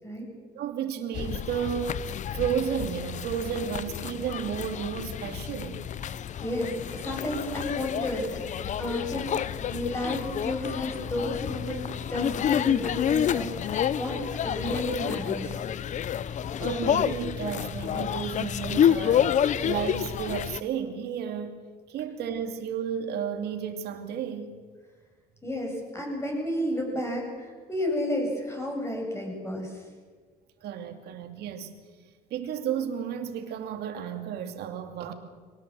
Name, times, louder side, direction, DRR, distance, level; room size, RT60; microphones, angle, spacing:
voice 1, 0.2-2.0 2.3-5.8 16.6-19.3 19.6-21.6 21.9-24.5 30.6-31.7 32.3-35.1, right 8 dB, 75° right, 6 dB, 2.6 m, -32 dB
sound 1, 1.1-20.6, left 9 dB, 45° left, 0.7 m, -29 dB
voice 2, 6.4-9.4 9.7-15.7 25.4-29.8, left 1 dB, 15° left, 1 dB, 7.6 m, -32 dB
23.5 x 19.0 x 7.6 m, 1.5 s
cardioid pair, 110°, 17 cm